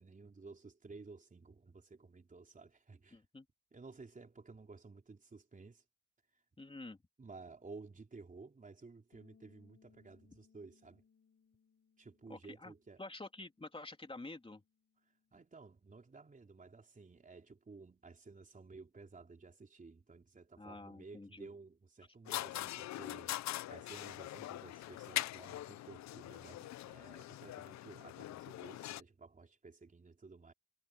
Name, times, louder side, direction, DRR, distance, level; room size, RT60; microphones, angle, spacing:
voice 1, 0.0-3.2 3.7-5.8 6.3-6.4 7.2-11.0 12.0-13.0 15.3-23.4 23.7-30.5, right 4 dB, 25° right, 4.1 m, -54 dB
voice 2, 3.1-3.5 6.6-7.0 12.3-12.7 13.0-14.6 20.6-21.5, left 2 dB, 20° left, 3.1 m, -49 dB
Bass guitar, 9.1-15.4, left 6 dB, 50° left, 7.4 m, -71 dB
sound 1, 22.3-29.0, left 14 dB, 65° left, 0.5 m, -42 dB
cardioid pair, 90°, 30 cm